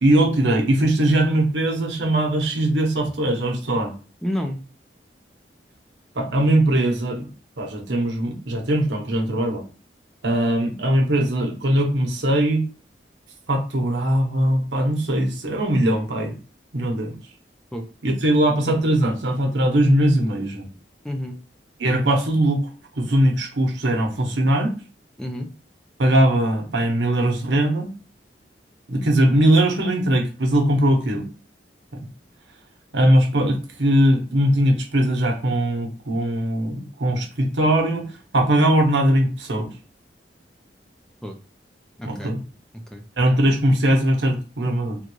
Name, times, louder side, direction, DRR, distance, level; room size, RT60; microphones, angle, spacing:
voice 1, 0.0-3.9 6.1-7.3 7.6-9.6 10.2-12.6 13.5-16.4 16.7-17.2 18.0-20.7 21.8-22.7 23.0-24.7 26.0-27.9 28.9-31.2 32.9-38.0 38.3-39.7 42.0-42.4 43.2-45.0, right 1 dB, 85° right, 3 dB, 1.0 m, -20 dB
voice 2, 4.2-4.6 17.7-17.9 21.0-21.4 25.2-25.5 41.2-41.4 42.0-42.3 42.7-43.0, equal, 5° left, 2 dB, 0.4 m, -30 dB
3.8 x 2.3 x 3.0 m, 0.35 s
head